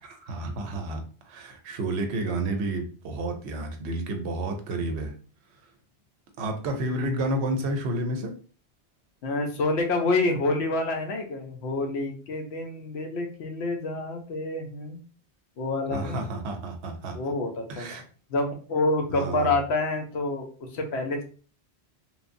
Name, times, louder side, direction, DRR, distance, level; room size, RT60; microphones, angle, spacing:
voice 1, 0.0-5.1 6.4-8.3 15.9-17.2 17.7-18.0 19.1-19.5, right 2 dB, 80° right, 5 dB, 0.9 m, -30 dB
voice 2, 9.2-15.0 15.6-16.2 17.1-18.0 18.3-21.2, left 2 dB, 75° left, 3 dB, 0.9 m, -28 dB
3.1 x 2.0 x 2.5 m, 0.39 s
omnidirectional pair, 1.1 m